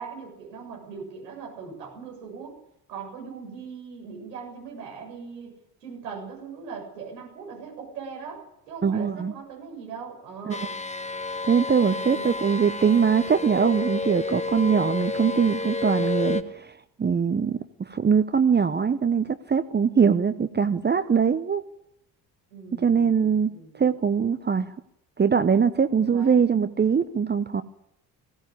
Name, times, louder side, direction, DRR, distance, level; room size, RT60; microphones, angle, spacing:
voice 1, 0.0-2.5 2.9-5.5 5.8-10.6 12.0-12.4 22.5-24.0 25.9-26.5, right 5 dB, 75° right, 0 dB, 7.8 m, -40 dB
voice 2, 8.8-9.3 10.5-10.6 11.5-16.7 17.0-17.6 17.9-21.6 22.8-23.5 23.8-24.7 25.2-27.6, right 6 dB, 20° right, 10 dB, 1.0 m, -22 dB
sound 1, 10.5-16.4, left 3 dB, 15° left, 1.5 m, -30 dB
21.0 x 16.5 x 8.6 m, 0.79 s
figure-of-eight pair, 50°, 50 cm